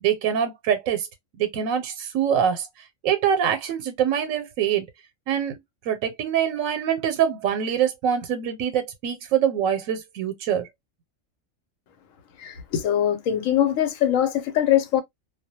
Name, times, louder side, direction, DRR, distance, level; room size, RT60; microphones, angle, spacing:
voice 1, 0.0-1.1 1.4-2.7 3.0-4.9 5.3-10.7, right 9 dB, 90° right, 1.0 m, -24 dB
voice 2, 12.4-15.0, left 10 dB, 90° left, 1.0 m, -22 dB
2.2 x 2.1 x 2.7 m
omnidirectional pair, 1.4 m